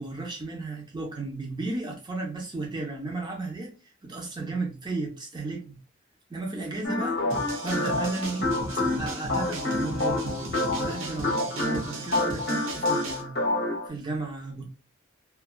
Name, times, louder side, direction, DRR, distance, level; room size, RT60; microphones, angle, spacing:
voice 1, 0.0-3.7 4.0-5.8 6.3-7.3 7.6-8.5 8.7-13.3 13.8-14.7, right 3 dB, 20° right, 0.6 m, -34 dB
sound 1, 6.8-13.9, left 2 dB, 50° left, 0.8 m, -28 dB
sound 2, 7.3-13.2, right 2 dB, 80° right, 0.8 m, -36 dB
2.6 x 2.3 x 2.2 m
head